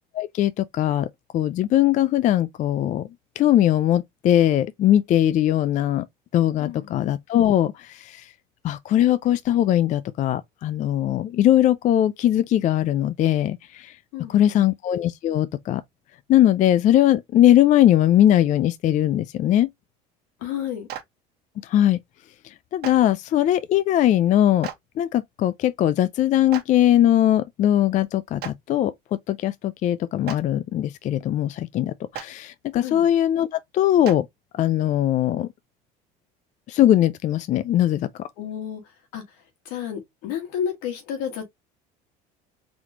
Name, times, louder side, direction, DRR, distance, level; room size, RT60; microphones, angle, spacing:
voice 1, 0.1-1.1 1.3-3.1 3.4-6.1 6.3-8.3 8.6-14.0 14.3-15.8 16.3-19.7 21.6-22.0 22.4-24.7 25.0-28.9 29.3-34.3 34.5-35.5 36.7-38.1, left 12 dB, 40° left, 0.4 m, -20 dB
voice 2, 6.6-6.9 14.1-14.7 20.4-20.9 32.8-33.0 38.4-38.8 39.1-39.2 39.7-41.4, left 9 dB, 80° left, 2.0 m, -31 dB
Clapping, 20.9-21.0 22.8-22.9 24.6-24.7 26.5-26.6 28.4-28.5 30.2-30.4 32.1-32.2 34.0-34.1, right 10 dB, 60° right, 1.1 m, -33 dB
4.1 x 3.1 x 2.8 m
supercardioid pair, 105°, 19 cm